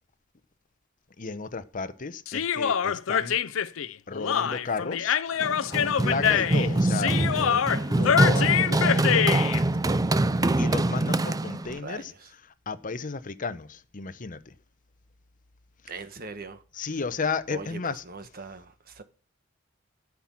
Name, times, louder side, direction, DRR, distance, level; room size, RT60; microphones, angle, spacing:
voice 1, 1.2-3.4 4.1-5.2 5.7-9.3 10.6-12.1 12.7-14.5 16.7-18.0, left 4 dB, 40° left, 0.8 m, -33 dB
Human voice, 2.3-9.6, left 8 dB, 75° left, 0.5 m, -25 dB
Run, 5.4-11.8, right 2 dB, 20° right, 0.5 m, -24 dB
voice 2, 11.8-12.3 15.9-16.9 17.5-17.8 18.0-19.0, right 4 dB, 50° right, 1.2 m, -41 dB
14.5 x 6.0 x 7.5 m
head